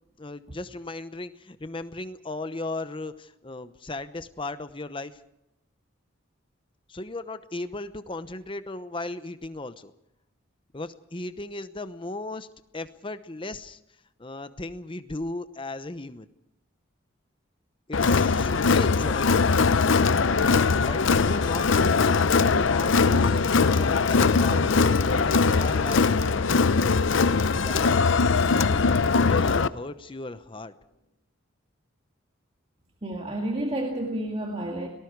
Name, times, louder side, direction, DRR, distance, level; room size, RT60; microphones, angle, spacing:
voice 1, 0.2-5.2 6.9-9.9 10.7-12.5 12.7-13.8 14.2-16.3 17.9-19.5 20.8-24.6 25.0-26.1 27.6-28.0 28.7-28.8 29.2-30.7, left 2 dB, 25° left, 12 dB, 0.9 m, -36 dB
Crowd, 17.9-29.7, left 4 dB, 70° left, 0.6 m, -21 dB
sound 1, 24.3-29.6, left 2 dB, 50° left, 6.3 m, -41 dB
voice 2, 33.0-34.9, right 1 dB, 30° right, 1 dB, 2.1 m, -30 dB
30.0 x 19.0 x 4.7 m, 0.85 s
head